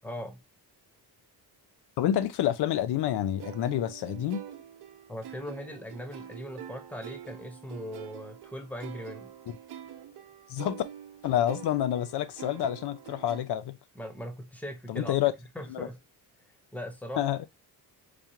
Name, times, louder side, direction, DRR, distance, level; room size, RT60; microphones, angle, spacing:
voice 1, 0.0-0.4 5.1-9.3 13.9-15.2 15.5-16.0 16.7-17.2, equal, 5° left, 0.9 m, -39 dB
voice 2, 2.0-4.4 9.5-9.6 10.5-10.8 11.2-13.8 14.9-15.3 15.7-15.9 17.2-17.5, left 11 dB, 70° left, 0.5 m, -28 dB
sound 1, 3.4-13.4, right 10 dB, 65° right, 0.8 m, -45 dB
4.9 x 2.4 x 2.7 m
cardioid pair, 145°, 41 cm